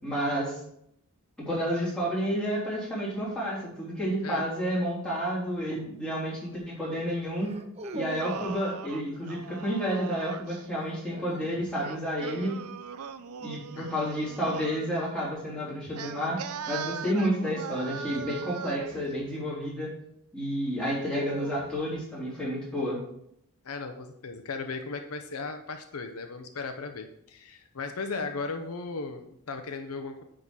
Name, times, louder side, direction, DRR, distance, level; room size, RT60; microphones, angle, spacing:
voice 1, 0.0-0.6 1.4-7.6 7.9-12.5 13.4-16.4 16.7-19.9 20.3-23.0, equal, 5° left, -7 dB, 3.2 m, -30 dB
sound 1, 5.5-5.9 7.4-8.6 10.7-11.7 14.2-14.6 17.3-19.7 20.8-22.1, right 2 dB, 30° right, 0.6 m, -44 dB
Singing, 7.8-10.6 11.7-14.9 15.9-19.0, right 7 dB, 75° right, 0.5 m, -40 dB
voice 2, 23.6-30.2, left 4 dB, 75° left, 6 dB, 0.7 m, -36 dB
9.5 x 3.8 x 6.2 m, 0.73 s
head